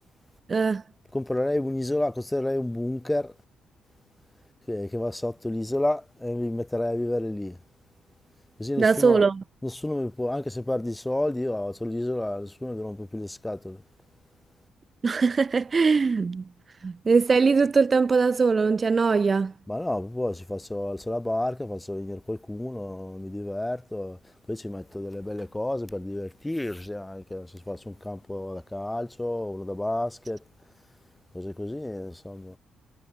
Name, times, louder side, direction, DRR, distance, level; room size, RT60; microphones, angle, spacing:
voice 1, 0.5-0.8 8.8-9.4 15.0-16.4 16.8-19.5, right 4 dB, 35° right, 0.3 m, -21 dB
voice 2, 1.1-3.3 4.7-7.6 8.6-9.2 9.6-13.8 19.7-30.4 31.3-32.6, left 1 dB, 10° left, 2.2 m, -30 dB
cardioid pair, 90°, 0 cm